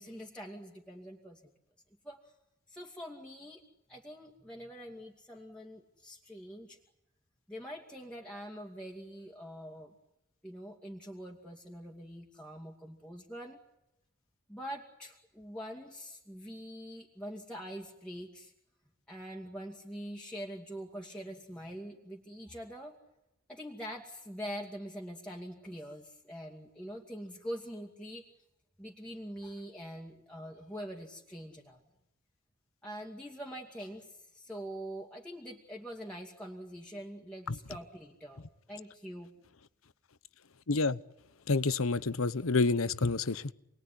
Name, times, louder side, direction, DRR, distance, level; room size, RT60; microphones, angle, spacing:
voice 1, 0.0-1.5 2.0-2.3 2.7-3.6 3.9-6.8 7.5-9.9 10.4-13.6 14.5-18.5 19.1-23.0 23.5-28.3 28.8-31.8 32.8-39.3, equal, 5° left, -2 dB, 2.4 m, -44 dB
voice 2, 40.7-41.0 41.5-43.5, left 3 dB, 80° left, 17 dB, 1.0 m, -28 dB
28.5 x 21.0 x 10.0 m, 0.89 s
head